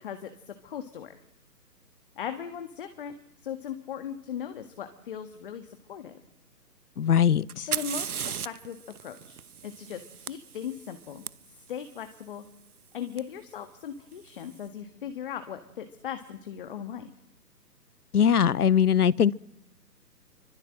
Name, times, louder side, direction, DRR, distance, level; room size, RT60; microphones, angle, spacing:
voice 1, 0.0-1.1 2.2-3.1 3.4-6.2 7.6-11.3 11.7-12.4 12.9-17.1, left 8 dB, 30° left, 1.7 m, -38 dB
voice 2, 7.0-7.7 18.1-19.4, left 8 dB, 65° left, 0.9 m, -21 dB
Fire, 7.5-11.3 13.2-13.3 14.1-14.5, right 8 dB, 60° right, 1.1 m, -36 dB
25.5 x 24.5 x 7.7 m
hypercardioid pair, 155°, 50 cm